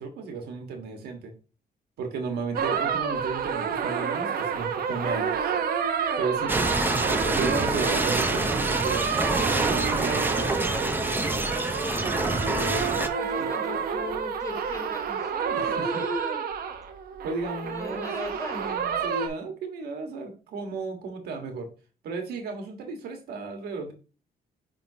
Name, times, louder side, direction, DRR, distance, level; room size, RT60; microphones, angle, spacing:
voice 1, 0.0-1.3 2.0-5.3 6.2-6.7 7.0-9.1 9.9-10.2 13.4-13.5 15.5-15.8 17.2-18.1 19.0-21.7 22.0-23.9, right 4 dB, 90° right, 4 dB, 1.5 m, -34 dB
sound 1, 2.5-19.3, right 7 dB, 70° right, 0.9 m, -29 dB
sound 2, 6.5-13.1, right 2 dB, 15° right, 0.7 m, -27 dB
voice 2, 6.6-7.8 9.6-12.3 13.2-16.4 17.6-19.0, left 1 dB, 20° left, -5 dB, 2.6 m, -38 dB
9.9 x 3.6 x 2.8 m, 0.35 s
cardioid pair, 85°, 16 cm